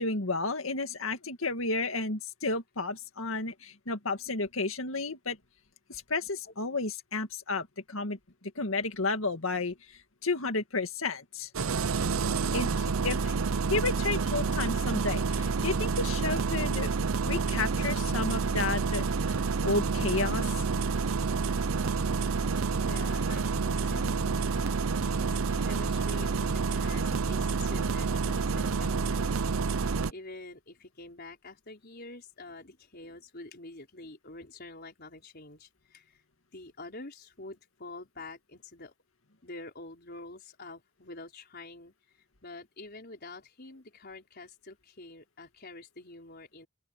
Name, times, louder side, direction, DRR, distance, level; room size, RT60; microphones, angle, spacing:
voice 1, 0.0-5.4 5.9-8.2 8.6-9.8 10.2-11.5 12.5-13.4 13.7-16.9 17.2-19.4 19.6-20.6, left 3 dB, 75° left, 2.1 m, -32 dB
Engine starting, 11.5-30.1, right 4 dB, 80° right, 0.7 m, -29 dB
voice 2, 22.8-24.7 25.0-29.8 30.1-36.2 36.5-38.9 39.4-41.9 42.4-46.7, left 2 dB, 50° left, 4.9 m, -47 dB
open air
head